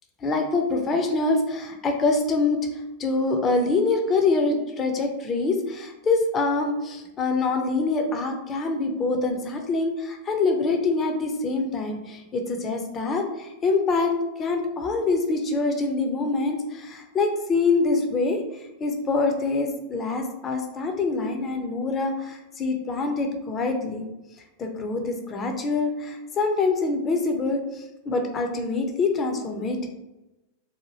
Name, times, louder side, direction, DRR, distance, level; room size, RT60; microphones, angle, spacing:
voice 1, 0.2-2.6 3.0-14.1 14.4-18.4 18.8-24.1 24.6-29.9, left 3 dB, 25° left, 4 dB, 0.5 m, -25 dB
2.8 x 2.5 x 2.8 m, 1.0 s
figure-of-eight pair, 90°, 0 cm